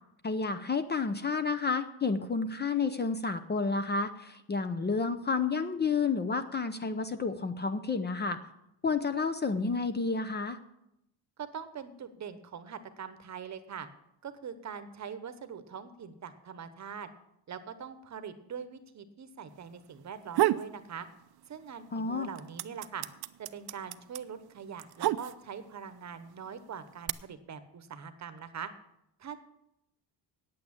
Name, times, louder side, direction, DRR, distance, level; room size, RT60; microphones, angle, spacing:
voice 1, 0.2-8.4 8.8-10.6 21.9-22.3, left 4 dB, 25° left, 10 dB, 0.6 m, -30 dB
voice 2, 11.4-13.9 14.2-17.1 17.5-21.1 21.5-23.1 23.4-28.7 29.2-29.4, right 7 dB, 40° right, 11 dB, 1.0 m, -43 dB
sound 1, 20.1-20.7 21.1-21.8 22.1-25.7 26.5-27.1, right 15 dB, 60° right, 0.6 m, -30 dB
9.3 x 8.6 x 8.7 m, 0.82 s
cardioid pair, 140°, 44 cm